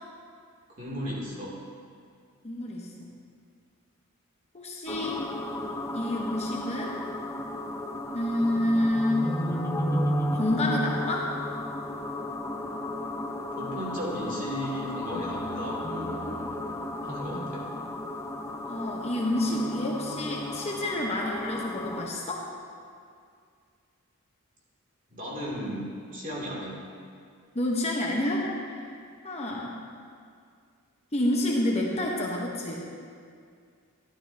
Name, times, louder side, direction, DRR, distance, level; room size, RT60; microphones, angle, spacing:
voice 1, 0.7-1.6 13.5-16.4 17.0-17.7 25.1-26.8, equal, 35° right, -5 dB, 2.5 m, -35 dB
voice 2, 2.4-3.1 4.5-5.2 5.9-6.9 8.1-9.4 10.3-11.3 18.6-22.5 27.5-29.0 29.2-29.8 31.1-32.8, left 1 dB, 30° left, -2 dB, 0.9 m, -28 dB
sound 1, 4.9-22.1, left 1 dB, 10° left, 0.5 m, -33 dB
13.5 x 11.5 x 2.8 m, 2.2 s
head